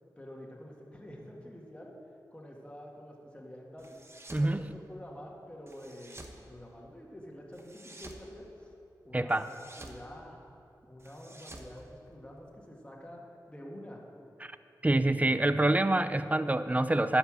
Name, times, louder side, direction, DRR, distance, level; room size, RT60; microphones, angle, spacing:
voice 1, 0.2-1.9 2.3-4.0 4.4-8.7 9.0-10.4 10.9-14.0, equal, 15° left, -2 dB, 1.8 m, -48 dB
sound 1, 3.8-4.5 5.7-6.4 7.5-8.3 9.3-10.0 11.0-12.5, right 2 dB, 35° right, 1.1 m, -50 dB
voice 2, 4.3-4.6 9.1-9.4 14.4-14.5 14.8-17.2, right 2 dB, 20° right, 12 dB, 0.4 m, -26 dB
11.0 x 5.8 x 7.3 m, 2.8 s
cardioid pair, 60°, 7 cm